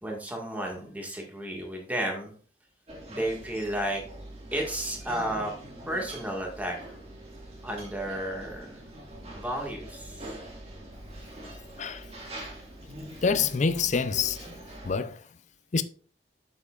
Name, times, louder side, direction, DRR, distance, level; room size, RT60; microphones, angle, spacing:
voice 1, 0.0-2.4 3.1-4.0 4.5-5.5 5.9-7.0 7.6-8.8 9.3-10.3, right 1 dB, 10° right, 1.8 m, -32 dB
sound 1, 2.9-15.0, right 1 dB, 35° right, 2.0 m, -44 dB
voice 2, 13.2-14.4 14.8-15.2 15.7-15.8, left 5 dB, 40° left, 0.5 m, -26 dB
8.4 x 7.2 x 2.5 m
head